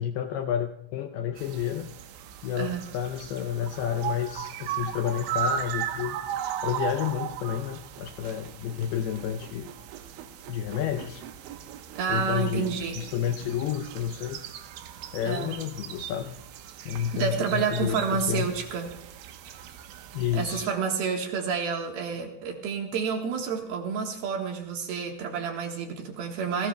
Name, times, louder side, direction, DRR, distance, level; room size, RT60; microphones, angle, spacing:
voice 1, 0.0-1.9 2.4-6.2 6.6-9.7 10.5-11.2 12.1-14.4 15.1-16.4 16.9-18.5 20.1-20.7, left 9 dB, 80° left, 7 dB, 2.3 m, -30 dB
sound 1, 1.4-20.7, right 9 dB, 85° right, 3.3 m, -37 dB
voice 2, 11.9-13.0 15.2-15.5 17.1-18.9 19.4-19.6 20.3-26.7, right 6 dB, 65° right, 2 dB, 2.9 m, -29 dB
28.5 x 18.0 x 2.3 m, 0.75 s
omnidirectional pair, 5.2 m